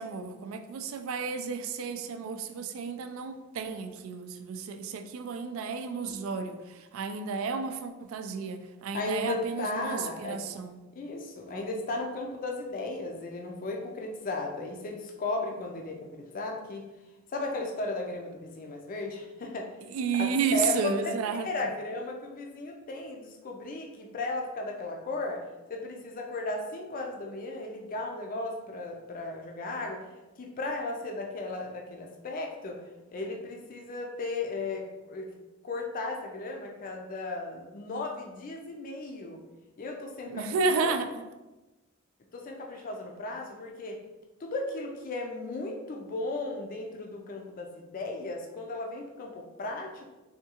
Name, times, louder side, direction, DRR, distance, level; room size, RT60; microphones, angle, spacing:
voice 1, 0.0-10.8 19.9-21.5 40.3-41.2, right 5 dB, 75° right, 9 dB, 0.3 m, -32 dB
voice 2, 8.9-10.4 11.0-16.9 17.3-19.7 20.2-25.4 25.7-30.0 30.4-32.8 33.1-35.3 35.6-39.4 39.8-40.9 42.3-44.0 44.4-50.1, left 2 dB, 40° left, 2 dB, 0.4 m, -35 dB
3.5 x 2.3 x 2.8 m, 1.1 s
head